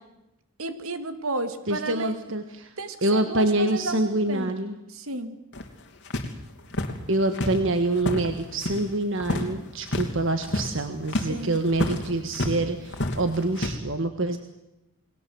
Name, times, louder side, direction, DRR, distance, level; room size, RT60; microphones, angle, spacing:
voice 1, 0.6-2.2 2.8-4.5 4.9-5.4 11.3-11.6, right 2 dB, 75° right, 10 dB, 2.3 m, -33 dB
voice 2, 1.7-2.7 3.0-4.7 7.1-14.4, right 2 dB, 60° right, 8 dB, 1.6 m, -26 dB
sound 1, 5.5-8.9 9.2-9.5 9.8-10.1 10.4-12.6 12.9-13.7, left 1 dB, 55° left, 3.1 m, -30 dB
29.0 x 21.0 x 7.9 m, 0.93 s
head